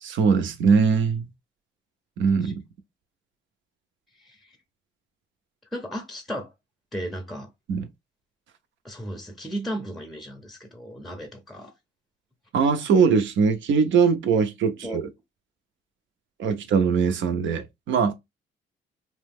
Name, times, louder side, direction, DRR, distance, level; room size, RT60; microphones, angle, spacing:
voice 1, 0.0-1.3 2.2-2.6 7.7-7.9 12.5-15.0 16.4-18.1, right 5 dB, 70° right, 0.6 m, -21 dB
voice 2, 5.7-6.5 6.9-7.5 8.8-11.7 14.8-15.0, equal, ahead, 0.6 m, -35 dB
2.8 x 2.1 x 3.4 m
cardioid pair, 90°, 20 cm